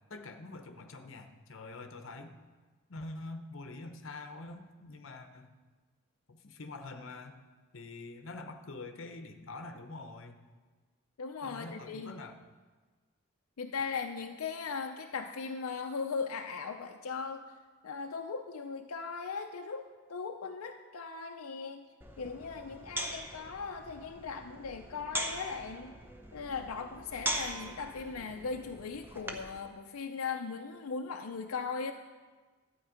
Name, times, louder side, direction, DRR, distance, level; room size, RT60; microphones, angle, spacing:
voice 1, 0.1-2.3 2.9-5.5 6.3-7.4 7.7-10.4 11.4-12.4, left 2 dB, 65° left, 6 dB, 0.9 m, -45 dB
voice 2, 11.2-12.2 13.6-17.4 17.8-21.9 22.2-25.9 26.3-31.9, left 5 dB, 90° left, 4 dB, 0.6 m, -38 dB
sound 1, 22.0-29.6, right 1 dB, 10° right, 0.7 m, -41 dB
12.0 x 8.6 x 5.0 m, 1.4 s
head